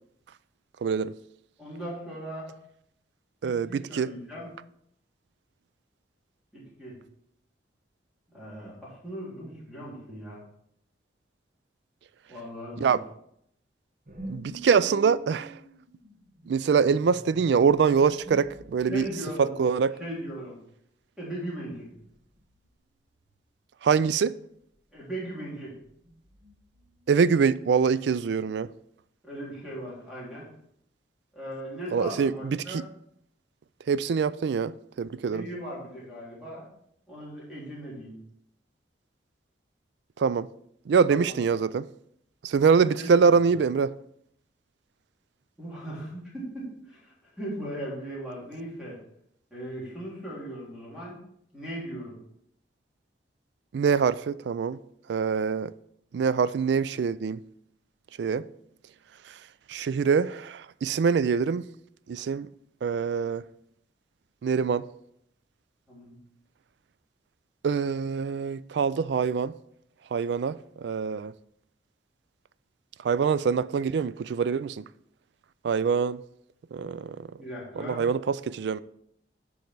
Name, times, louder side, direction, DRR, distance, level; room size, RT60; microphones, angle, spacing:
voice 1, 0.8-1.1 3.4-4.1 12.8-13.0 14.3-15.5 16.5-19.1 19.4-19.9 23.8-24.4 27.1-28.7 31.9-32.8 33.9-35.5 40.2-40.5 40.9-41.9 42.4-43.9 53.7-54.8 55.1-55.7 56.1-57.4 58.2-58.5 59.3-59.4 59.7-61.7 62.1-62.5 62.8-63.4 64.4-64.8 67.6-69.5 70.1-71.3 73.0-74.8 75.6-76.2 76.7-77.3 77.8-78.8, right 6 dB, 65° right, 0.3 m, -24 dB
voice 2, 1.6-2.5 3.4-4.5 6.5-6.9 8.3-10.4 12.3-13.0 18.9-19.6 20.0-20.5 21.2-21.9 24.9-25.7 29.2-30.5 31.3-32.8 35.3-36.7 37.1-38.1 41.1-41.3 43.0-43.1 45.6-49.0 49.5-51.2 51.5-52.1 65.9-66.2 77.4-78.0, right 1 dB, 5° right, 3.3 m, -38 dB
sound 1, 14.1-19.2 21.9-22.7 22.9-23.4 25.8-27.3, right 1 dB, 45° right, 1.0 m, -47 dB
9.5 x 5.3 x 4.6 m
head